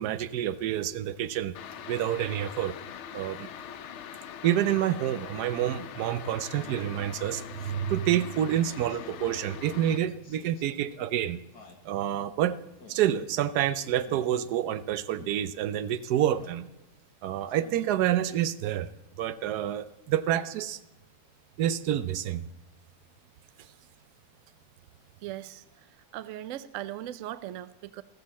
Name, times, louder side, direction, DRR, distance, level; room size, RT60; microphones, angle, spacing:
voice 1, 0.0-1.6 1.9-2.7 3.1-3.5 4.4-11.4 11.9-12.6 12.9-16.7 17.2-18.9 19.2-20.8 21.6-22.4, right 11 dB, 85° right, 15 dB, 1.2 m, -28 dB
sound 1, 1.5-10.0, left 8 dB, 60° left, 0.8 m, -42 dB
Speech synthesizer, 5.4-5.7 6.5-6.9 7.7-8.0 8.9-9.3 10.2-10.6 11.5-11.8 12.8-13.1 14.0-14.3 15.1-15.4 16.3-16.6 17.5-17.8, left 5 dB, 90° left, 2.1 m, -51 dB
voice 2, 25.2-25.6 26.1-28.0, right 13 dB, 65° right, 15 dB, 0.9 m, -38 dB
14.5 x 13.5 x 4.2 m, 0.98 s
omnidirectional pair, 1.7 m